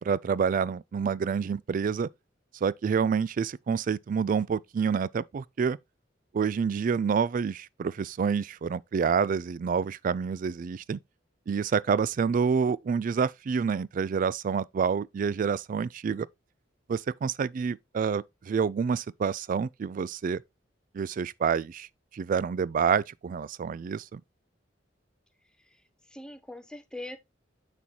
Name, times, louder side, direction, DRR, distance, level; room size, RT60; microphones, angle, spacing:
voice 1, 0.0-2.1 2.6-5.8 6.3-11.0 11.5-16.3 16.9-20.4 20.9-21.9 22.1-24.2, right 6 dB, 45° right, 0.3 m, -28 dB
voice 2, 25.6-27.2, left 1 dB, 5° left, 0.7 m, -43 dB
7.1 x 6.2 x 2.8 m
head